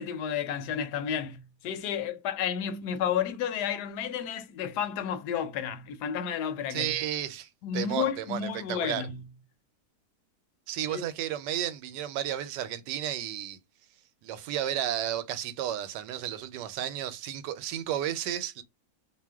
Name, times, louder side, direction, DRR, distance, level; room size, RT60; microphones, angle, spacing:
voice 1, 0.0-7.0 7.6-9.3 10.9-11.0, left 8 dB, 75° left, 1.1 m, -32 dB
voice 2, 6.7-7.5 7.7-9.0 10.7-13.6 14.2-18.6, right 11 dB, 90° right, 1.2 m, -32 dB
2.8 x 2.1 x 3.4 m
omnidirectional pair, 1.8 m